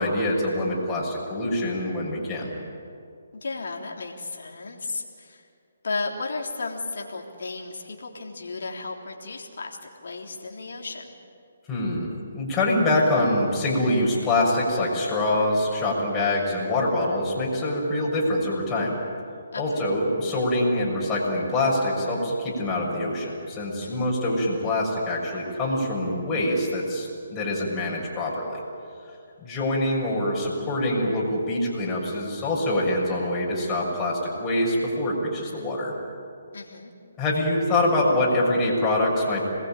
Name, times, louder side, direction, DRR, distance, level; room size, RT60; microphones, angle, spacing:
voice 1, 0.0-2.5 11.7-19.0 19.6-28.6 29.4-35.9 37.2-39.5, left 1 dB, 15° left, -5 dB, 6.4 m, -25 dB
voice 2, 3.3-5.4 5.8-11.1 19.5-19.9 23.8-24.2 36.5-36.9, left 3 dB, 70° left, 1 dB, 3.4 m, -34 dB
27.0 x 20.5 x 9.1 m, 2.4 s
hypercardioid pair, 150°, 0 cm